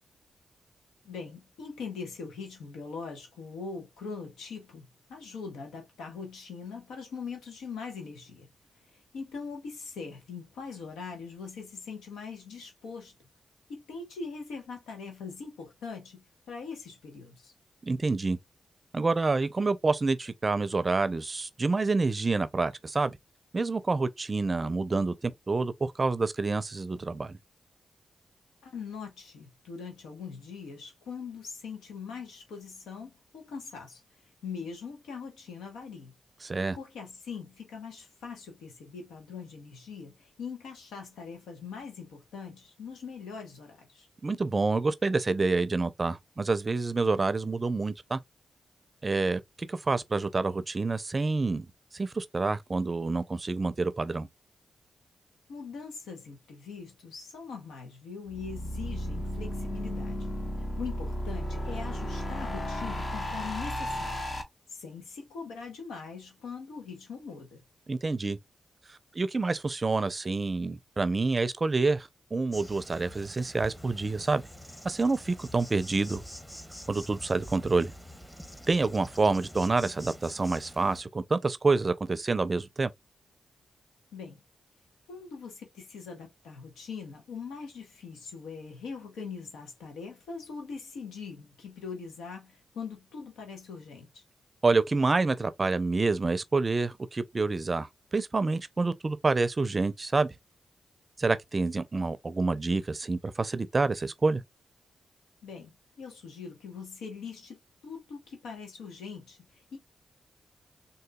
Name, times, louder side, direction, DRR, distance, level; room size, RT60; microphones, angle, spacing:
voice 1, 1.0-8.5 8.7-13.1 13.7-17.5 28.6-34.0 34.4-36.1 36.7-44.1 55.5-60.2 60.6-64.2 64.7-67.6 84.1-84.4 85.1-94.2 105.4-109.8, left 5 dB, 90° left, 1.0 m, -42 dB
voice 2, 17.8-18.4 18.9-23.2 23.5-27.4 36.4-36.8 44.2-48.2 49.0-51.7 51.9-54.3 67.9-68.4 68.9-74.4 74.8-76.2 76.9-77.9 78.7-82.9 94.6-100.3 101.2-104.4, right 3 dB, 40° right, 0.5 m, -28 dB
sound 1, 58.3-64.4, left 1 dB, 40° left, 0.9 m, -34 dB
Insect, 72.5-81.0, equal, 5° left, 0.9 m, -46 dB
3.8 x 2.6 x 2.2 m
supercardioid pair, 45°, 0 cm